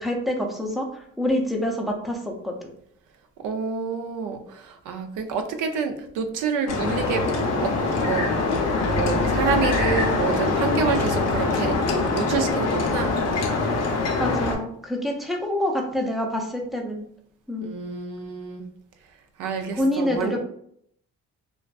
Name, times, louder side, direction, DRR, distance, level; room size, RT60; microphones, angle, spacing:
voice 1, 0.0-2.2 2.4-2.5 14.2-17.1 17.5-17.7 19.7-20.4, left 1 dB, ahead, 1 dB, 0.4 m, -26 dB
voice 2, 3.4-7.2 7.6-7.7 8.0-8.3 8.8-11.8 12.1-13.1 17.6-18.7 19.4-20.4, right 5 dB, 85° right, 6 dB, 0.5 m, -28 dB
sound 1, 6.7-14.5, left 3 dB, 60° left, 0.6 m, -23 dB
2.4 x 2.3 x 2.2 m, 0.68 s
cardioid pair, 90°, 30 cm